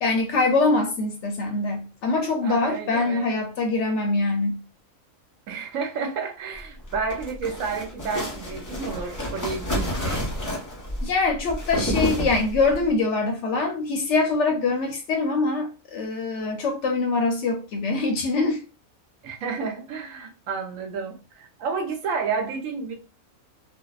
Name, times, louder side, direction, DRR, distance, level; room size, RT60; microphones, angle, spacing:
voice 1, 0.0-4.6 11.0-18.6, left 3 dB, 65° left, 0.8 m, -24 dB
voice 2, 2.4-3.3 5.5-10.3 19.2-22.9, right 5 dB, 75° right, 0.9 m, -31 dB
sound 1, 6.8-12.8, equal, 30° left, 0.3 m, -29 dB
2.6 x 2.1 x 2.3 m
omnidirectional pair, 1.5 m